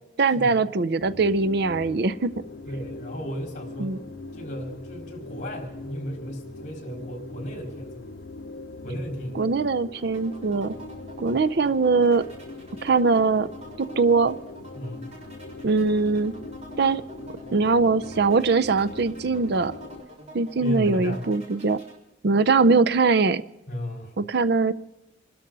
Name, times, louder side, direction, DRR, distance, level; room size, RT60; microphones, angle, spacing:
voice 1, 0.2-2.3 3.8-4.0 9.4-10.7 11.2-12.2 12.8-13.5 13.8-14.4 15.6-16.3 16.8-17.0 17.5-19.7 20.3-21.8 22.2-23.4 24.2-24.7, right 4 dB, 60° right, 15 dB, 0.5 m, -21 dB
sound 1, 1.0-20.0, left 2 dB, 70° left, 0.8 m, -41 dB
voice 2, 2.6-4.0 4.3-8.0 8.8-9.4 14.7-15.1 20.6-21.2 23.7-24.1, equal, 45° left, 1 dB, 4.4 m, -34 dB
sound 2, 9.9-22.0, right 1 dB, 35° right, 3.7 m, -47 dB
27.0 x 13.0 x 4.0 m, 0.93 s
head